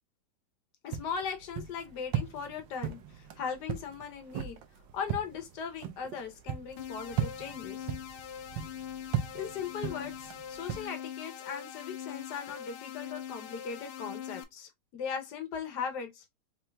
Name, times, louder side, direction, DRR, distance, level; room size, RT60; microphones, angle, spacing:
voice 1, 0.8-4.6 4.9-7.9 9.3-16.4, left 6 dB, 60° left, 1.3 m, -38 dB
sound 1, 0.9-10.9, right 9 dB, 70° right, 1.3 m, -38 dB
sound 2, 6.8-14.4, left 9 dB, 80° left, 1.5 m, -42 dB
5.3 x 3.0 x 2.2 m
omnidirectional pair, 2.3 m